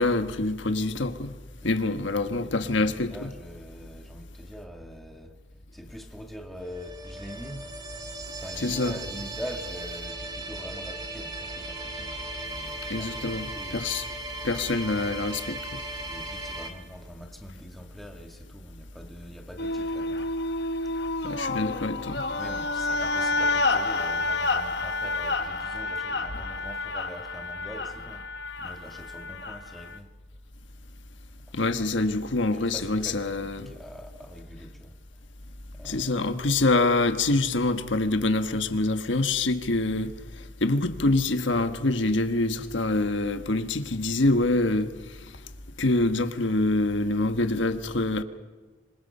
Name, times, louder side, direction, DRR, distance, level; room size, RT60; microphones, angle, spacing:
voice 1, 0.0-1.3 1.6-3.3 8.6-9.0 12.9-14.1 14.4-15.8 21.2-22.2 31.5-33.7 35.8-40.1 40.6-44.9 45.8-48.2, left 2 dB, 80° left, 1.4 m, -25 dB
voice 2, 1.6-5.4 5.7-7.7 8.4-14.0 16.1-20.3 22.3-30.1 32.4-35.0 35.7-36.7, equal, ahead, 2.0 m, -44 dB
sound 1, 6.6-16.7, right 2 dB, 20° right, 2.2 m, -37 dB
sound 2, 19.6-30.0, left 3 dB, 60° left, 1.2 m, -29 dB
26.5 x 25.0 x 5.6 m
head